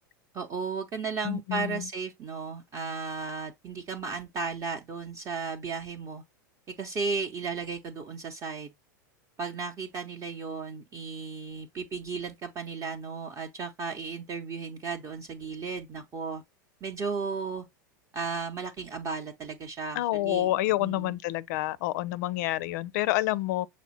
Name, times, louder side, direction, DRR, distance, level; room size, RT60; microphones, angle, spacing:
voice 1, 0.3-6.2 6.8-8.7 9.4-16.4 16.8-17.7 18.1-20.5 20.8-21.2, right 5 dB, 30° right, 0.7 m, -35 dB
voice 2, 1.2-1.9 20.0-23.7, left 16 dB, 60° left, 0.4 m, -28 dB
5.9 x 2.1 x 4.1 m
hypercardioid pair, 95°, 10 cm